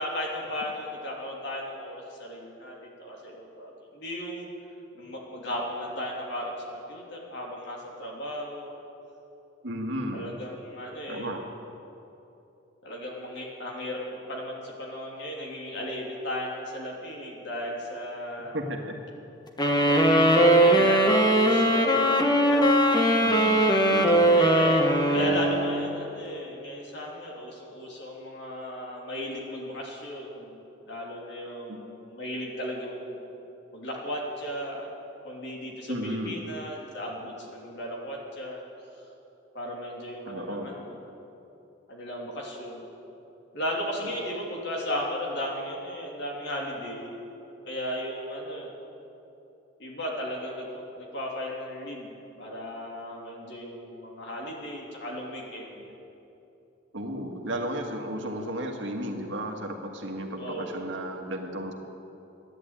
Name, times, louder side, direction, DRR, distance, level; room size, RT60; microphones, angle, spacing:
voice 1, 0.0-4.5 4.9-8.7 10.1-11.3 12.8-18.6 19.8-22.0 22.5-23.0 24.3-24.8 25.1-33.2 33.7-34.9 35.2-38.6 39.5-41.0 41.9-42.8 43.5-47.1 47.6-48.7 49.8-50.7 51.0-55.9 60.4-60.8, equal, 60° left, -2 dB, 3.1 m, -35 dB
voice 2, 9.6-10.3 11.1-11.4 18.5-18.8 23.2-24.4 25.1-25.5 31.7-31.8 35.9-36.4 40.3-40.7 56.9-61.7, equal, 65° right, 2 dB, 1.7 m, -34 dB
sound 1, 19.6-26.0, right 1 dB, 20° left, 1.2 m, -20 dB
14.0 x 10.5 x 9.0 m, 2.9 s
head